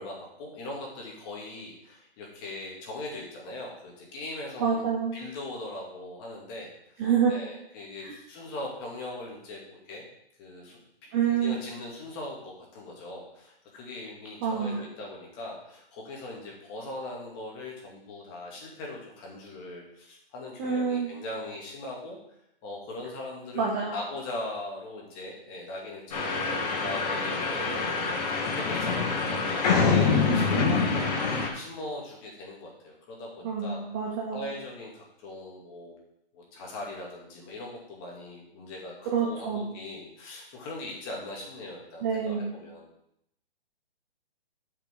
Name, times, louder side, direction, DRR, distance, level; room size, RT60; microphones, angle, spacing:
voice 1, 0.0-6.7 7.3-10.0 10.4-22.2 22.6-23.6 23.9-26.5 26.8-27.8 28.5-29.0 29.3-33.8 34.3-36.0 36.3-42.9, left 2 dB, 25° left, -2 dB, 2.3 m, -40 dB
voice 2, 4.6-5.2 7.0-7.3 8.0-8.1 11.1-11.6 14.4-14.8 20.6-21.1 23.5-23.9 30.0-30.5 33.4-34.4 39.1-39.7 42.0-42.6, right 6 dB, 15° right, -1 dB, 0.6 m, -27 dB
sound 1, 26.1-31.5, left 4 dB, 40° left, 2.4 m, -26 dB
12.0 x 5.8 x 3.8 m, 0.77 s
hypercardioid pair, 160°, 31 cm